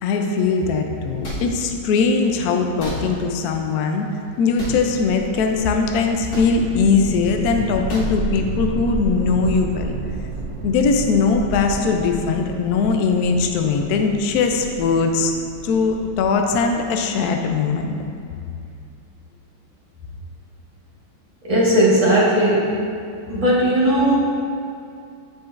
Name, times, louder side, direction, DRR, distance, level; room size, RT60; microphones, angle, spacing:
voice 1, 0.0-4.1 4.4-9.9 10.6-15.3 15.6-17.9, left 4 dB, 75° left, 4 dB, 0.9 m, -20 dB
sound 1, 1.2-1.4 2.8-3.0 4.6-4.8 6.3-6.5 7.9-8.1, equal, 55° left, 1.9 m, -29 dB
sound 2, 4.8-17.9, right 3 dB, 75° right, 0.9 m, -32 dB
voice 2, 21.4-22.7 23.3-24.2, right 1 dB, 20° right, -8 dB, 1.2 m, -17 dB
10.0 x 5.1 x 2.5 m, 2.4 s
omnidirectional pair, 2.1 m